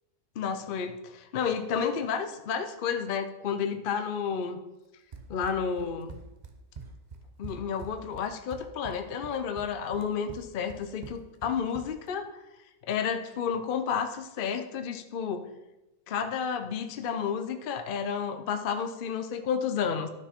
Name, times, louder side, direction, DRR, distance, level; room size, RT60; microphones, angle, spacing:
voice 1, 0.4-4.6 5.3-6.2 7.4-12.3 12.9-15.5 16.1-20.1, left 7 dB, 65° left, 7 dB, 0.5 m, -31 dB
Run, 5.1-12.1, right 4 dB, 85° right, 0.3 m, -45 dB
12.5 x 4.6 x 4.4 m, 1.0 s
omnidirectional pair, 1.7 m